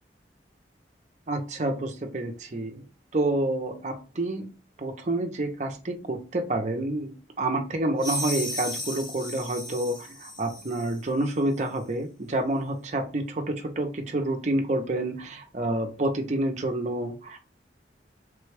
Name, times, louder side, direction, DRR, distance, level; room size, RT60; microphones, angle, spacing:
voice 1, 1.3-2.9 3.1-4.5 4.8-17.4, right 1 dB, 40° right, 4 dB, 0.6 m, -28 dB
sound 1, 8.0-11.0, left 1 dB, 25° left, 0.7 m, -35 dB
3.3 x 2.2 x 3.3 m, 0.32 s
head